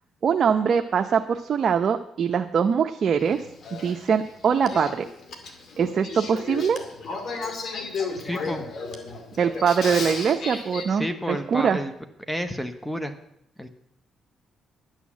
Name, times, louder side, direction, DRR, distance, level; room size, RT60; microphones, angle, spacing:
voice 1, 0.2-3.4 3.8-5.1 5.8-6.8 9.4-11.8, right 7 dB, 55° right, 5 dB, 0.7 m, -23 dB
Male speech man speaking / Female speech woman speaking / Conversation, 3.2-10.8, left 4 dB, 60° left, 2.3 m, -34 dB
voice 2, 8.2-8.6 10.9-11.9 12.2-13.1 13.6-13.7, equal, 5° left, 9 dB, 1.0 m, -30 dB
11.0 x 8.3 x 7.3 m, 0.77 s
cardioid pair, 90°, 0 cm